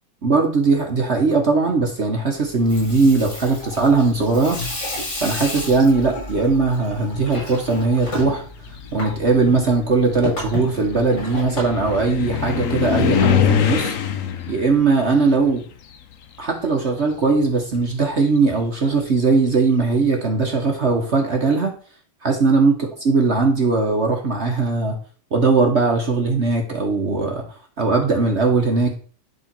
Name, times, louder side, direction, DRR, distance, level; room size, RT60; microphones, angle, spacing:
voice 1, 0.2-4.6 5.2-8.4 8.9-13.9 14.5-15.6 16.4-21.7 22.2-24.9 25.3-28.9, right 3 dB, 40° right, 2 dB, 1.0 m, -19 dB
Water tap faucet / Sink (filling or washing), 2.5-12.7, left 1 dB, 50° left, 4.6 m, -32 dB
sound 1, 4.6-5.1 6.1-6.2 6.8-16.7 17.0-19.6, left 8 dB, 80° left, 0.7 m, -26 dB
11.0 x 3.7 x 4.5 m, 0.41 s
omnidirectional pair, 2.4 m